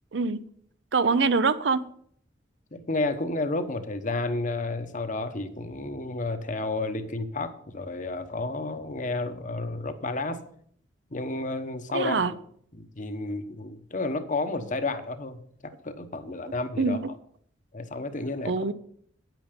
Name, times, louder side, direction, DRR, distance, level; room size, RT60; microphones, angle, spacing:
voice 1, 0.9-1.8 11.9-12.3 16.8-17.0 18.4-18.7, right 4 dB, 70° right, 15 dB, 0.7 m, -24 dB
voice 2, 2.7-10.4 11.1-12.2 12.7-15.4 15.8-17.0 17.7-18.7, left 2 dB, 45° left, 9 dB, 1.0 m, -31 dB
9.6 x 9.2 x 5.2 m, 0.63 s
head